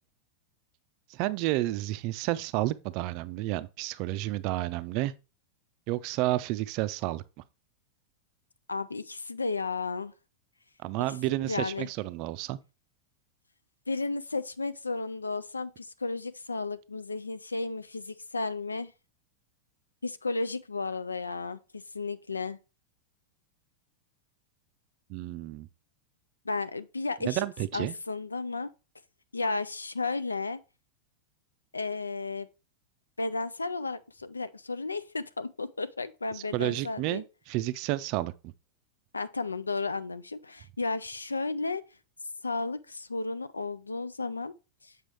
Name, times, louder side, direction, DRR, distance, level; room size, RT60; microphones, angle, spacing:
voice 1, 1.1-5.1 5.9-7.2 10.8-12.6 25.1-25.7 27.3-27.9 36.3-38.5, right 16 dB, 45° right, 0.4 m, -31 dB
voice 2, 8.7-10.1 11.4-11.9 13.9-18.9 20.0-22.6 26.5-27.5 27.7-28.7 29.3-30.6 31.7-32.5 33.2-37.2 39.1-41.8 42.4-44.5 44.8-44.9, left 3 dB, 80° left, 0.3 m, -33 dB
7.4 x 4.8 x 3.1 m
figure-of-eight pair, 90°, 0 cm